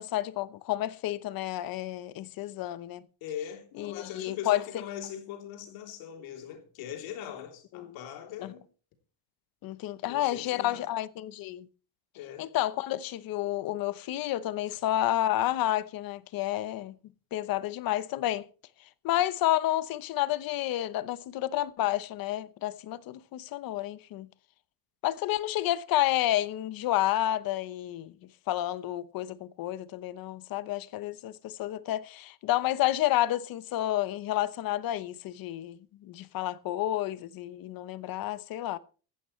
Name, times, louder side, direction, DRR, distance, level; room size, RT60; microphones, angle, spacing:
voice 1, 0.0-3.0 3.8-4.6 7.7-8.0 8.4-8.5 9.6-11.7 12.4-16.9 17.3-18.5 19.0-24.3 25.0-28.1 28.5-38.8, left 14 dB, 45° left, 0.9 m, -30 dB
voice 2, 3.2-8.6 10.0-10.9 12.1-12.6 14.7-14.8, left 9 dB, 75° left, 3.4 m, -41 dB
17.5 x 15.0 x 3.2 m
cardioid pair, 155°, 47 cm